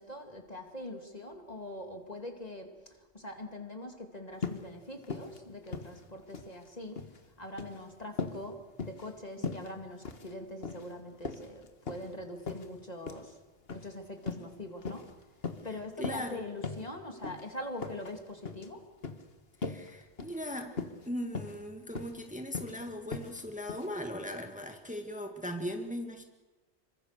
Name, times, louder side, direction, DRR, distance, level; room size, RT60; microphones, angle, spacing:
voice 1, 0.0-2.7 3.1-7.1 7.4-13.4 13.7-15.0 15.6-18.8, left 1 dB, 35° left, 4 dB, 2.5 m, -43 dB
sound 1, 4.4-4.7 5.0-5.4 5.7-6.6 6.8-7.2 7.5-7.8 8.2-8.4 8.8-9.1 9.4-9.7 10.0-10.3 10.6-10.9 11.2-12.1 12.5-12.7 13.1-13.3 13.7-13.9 14.2-14.5 14.8-15.1 15.4-15.7 16.0-16.3 16.6-16.9 17.2-17.4 17.8-18.1 18.5-18.7 19.0-19.2 19.6-19.9 20.2-20.4 20.7-21.1 21.3-21.6 22.0-22.2 22.5-22.8 23.1-23.4 23.7-23.9, left 4 dB, 60° left, 1.8 m, -38 dB
voice 2, 15.7-16.4 19.6-20.7 21.1-26.2, equal, 5° right, 4 dB, 1.8 m, -39 dB
27.0 x 23.5 x 6.7 m, 1.2 s
omnidirectional pair, 1.1 m